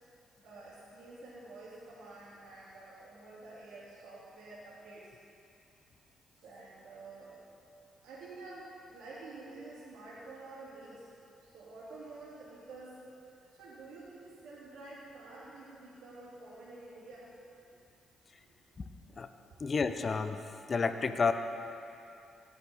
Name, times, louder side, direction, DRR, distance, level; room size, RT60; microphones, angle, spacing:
voice 1, 0.4-5.1 6.3-7.4 8.0-11.1 11.4-13.2 13.5-17.3 18.4-18.5, right 2 dB, 55° right, -9 dB, 3.0 m, -49 dB
voice 2, 19.6-20.4 20.7-21.3, left 5 dB, 40° left, 9 dB, 0.7 m, -30 dB
16.0 x 9.7 x 4.2 m, 2.7 s
figure-of-eight pair, 40°, 0 cm